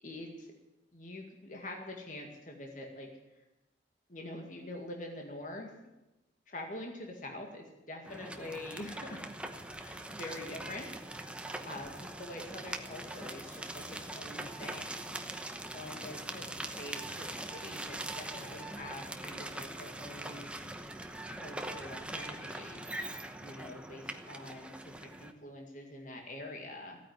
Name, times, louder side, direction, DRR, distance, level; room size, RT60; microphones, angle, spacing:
voice 1, 0.0-0.5 0.9-3.1 3.4-3.5 4.1-5.7 6.5-9.2 9.8-10.9 11.2-11.4 11.7-15.4 15.7-20.8 21.3-22.8 23.4-27.0, left 1 dB, 45° left, 1 dB, 2.1 m, -45 dB
sound 1, 8.0-25.3, right 1 dB, 5° right, 0.9 m, -42 dB
15.5 x 9.4 x 9.7 m, 0.98 s
head